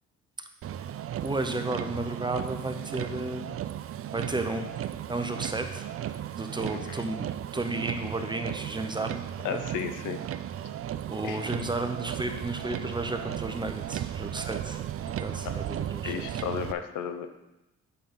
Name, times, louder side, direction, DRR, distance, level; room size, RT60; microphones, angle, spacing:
Motor vehicle (road), 0.6-16.7, right 11 dB, 50° right, 0.4 m, -35 dB
voice 1, 1.2-3.5 4.1-4.7 5.1-5.9 6.4-9.2 9.5-9.6 11.1-16.4, right 2 dB, 15° right, 6 dB, 0.9 m, -33 dB
voice 2, 6.7-7.0 9.4-10.2 11.2-11.4 15.4-15.5 16.0-17.3, left 8 dB, 80° left, 8 dB, 0.8 m, -33 dB
8.5 x 6.7 x 3.9 m, 0.95 s
cardioid pair, 90°, 30 cm